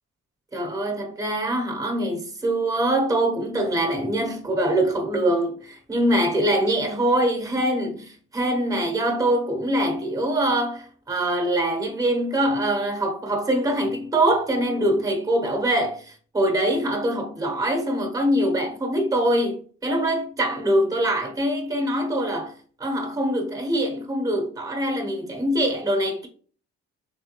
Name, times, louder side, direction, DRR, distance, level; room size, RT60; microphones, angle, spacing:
voice 1, 0.5-22.5 22.8-26.3, right 1 dB, 10° right, 1.0 m, -23 dB
3.5 x 3.4 x 2.9 m
cardioid pair, 90°, 30 cm